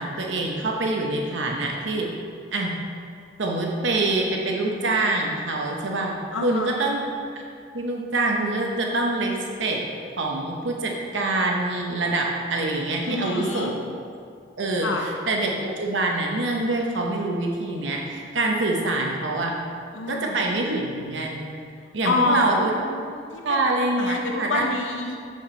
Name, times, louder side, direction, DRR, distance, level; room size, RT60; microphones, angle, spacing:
voice 1, 0.0-2.1 2.5-2.7 3.4-7.0 7.7-9.8 10.2-13.7 14.6-19.5 20.1-21.5 21.9-22.7 23.4-24.7, right 2 dB, 75° right, 0 dB, 0.8 m, -25 dB
voice 2, 6.3-6.8 13.1-13.7 14.8-15.0 19.9-20.4 22.0-23.6 24.0-25.2, left 3 dB, 85° left, 2 dB, 0.6 m, -27 dB
6.9 x 6.4 x 4.3 m, 2.3 s
head